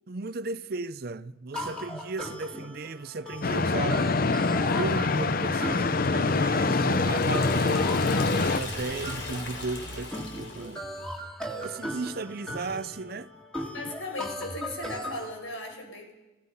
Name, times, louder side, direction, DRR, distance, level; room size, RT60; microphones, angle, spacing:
voice 1, 0.1-4.2 4.5-10.8 11.6-13.3, right 3 dB, 50° right, 0.6 m, -35 dB
sound 1, 1.5-15.3, equal, 5° left, 2.5 m, -38 dB
sound 2, 3.4-8.6, left 3 dB, 45° left, 0.6 m, -25 dB
Liquid, 6.3-10.9, left 2 dB, 70° left, 4.1 m, -38 dB
voice 2, 13.7-16.1, left 2 dB, 90° left, 5.8 m, -37 dB
29.0 x 17.0 x 5.6 m
head